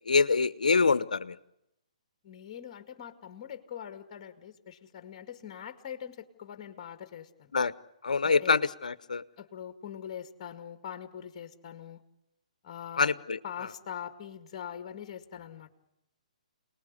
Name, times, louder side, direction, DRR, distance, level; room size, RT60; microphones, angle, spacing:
voice 1, 0.1-1.4 7.5-7.7 8.0-9.2 13.0-13.4, left 4 dB, 80° left, 17 dB, 1.0 m, -25 dB
voice 2, 2.2-7.5 8.2-8.6 9.4-12.0 12.6-13.1 13.4-15.7, left 9 dB, 40° left, 8 dB, 2.2 m, -43 dB
28.0 x 19.5 x 9.7 m, 0.86 s
hypercardioid pair, 140°, 4 cm